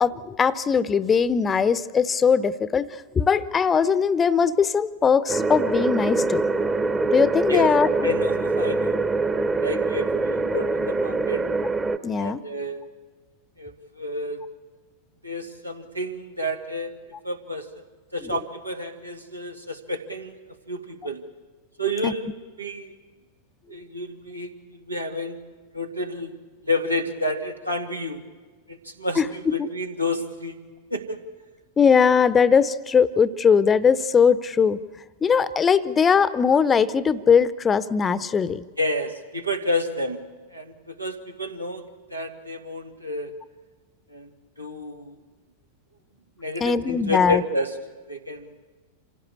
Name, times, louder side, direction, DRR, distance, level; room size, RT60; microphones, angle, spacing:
voice 1, 0.0-6.4 7.1-8.1 12.0-12.4 18.2-18.3 22.0-22.1 29.2-29.7 31.8-34.8 35.2-38.7 46.6-47.4, left 6 dB, 20° left, 17 dB, 0.8 m, -20 dB
sound 1, 5.3-12.0, right 3 dB, 15° right, 1.1 m, -24 dB
voice 2, 8.0-9.0 9.6-11.4 12.1-12.8 13.6-14.4 15.2-16.9 17.2-17.8 18.1-20.4 20.7-21.2 21.8-22.3 22.6-22.9 23.7-25.4 25.7-26.4 26.6-28.2 28.7-30.5 30.9-31.2 38.8-40.2 40.5-43.3 44.1-44.3 44.6-45.2 46.4-47.7 48.1-48.5, left 1 dB, 85° right, 4 dB, 2.3 m, -30 dB
27.0 x 16.5 x 8.4 m, 1.4 s
figure-of-eight pair, 90°, 0 cm